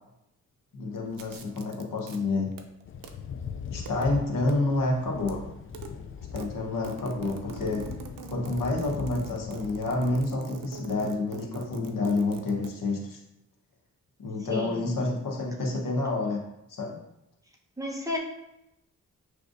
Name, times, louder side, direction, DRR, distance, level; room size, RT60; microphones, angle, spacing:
voice 1, 0.7-2.5 3.7-5.4 6.3-7.9 8.3-13.2 14.2-16.4 16.8-17.0, left 2 dB, 75° left, -1 dB, 1.2 m, -29 dB
sound 1, 1.1-2.2 2.5-3.1 3.7-4.1 4.4-4.6 4.9-5.4 5.6-5.9 6.2-12.7, right 5 dB, 75° right, 0.6 m, -43 dB
Thunder / Rain, 2.8-10.3, left 6 dB, 40° left, 0.4 m, -40 dB
voice 2, 14.5-14.9 17.8-18.2, left 2 dB, 10° right, -2 dB, 1.0 m, -32 dB
6.2 x 3.3 x 2.6 m, 0.86 s
cardioid pair, 75°, 33 cm